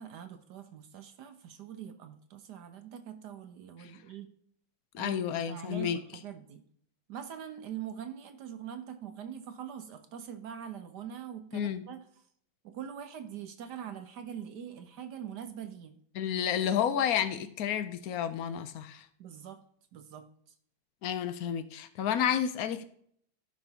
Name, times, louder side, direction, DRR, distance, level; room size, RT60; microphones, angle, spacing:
voice 1, 0.0-4.3 5.0-6.6 7.1-12.0 12.6-16.0 19.2-19.6 19.9-20.3, right 9 dB, 65° right, 8 dB, 1.1 m, -43 dB
voice 2, 4.9-6.0 11.5-11.8 16.2-19.1 21.0-22.8, left 9 dB, 80° left, 11 dB, 0.8 m, -31 dB
15.0 x 5.3 x 2.8 m, 0.64 s
omnidirectional pair, 2.2 m